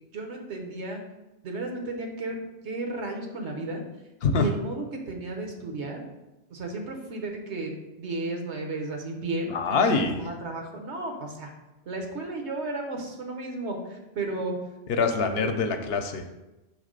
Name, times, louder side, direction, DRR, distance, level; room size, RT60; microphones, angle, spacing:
voice 1, 0.1-1.0 1.4-2.4 2.6-3.8 4.4-6.0 6.5-7.7 8.0-11.5 11.9-14.6 15.3-15.5, right 2 dB, 85° right, 2 dB, 1.3 m, -33 dB
voice 2, 9.5-10.2 14.9-16.2, left 4 dB, 70° left, 6 dB, 0.8 m, -24 dB
5.8 x 3.2 x 5.2 m, 1.0 s
omnidirectional pair, 1.1 m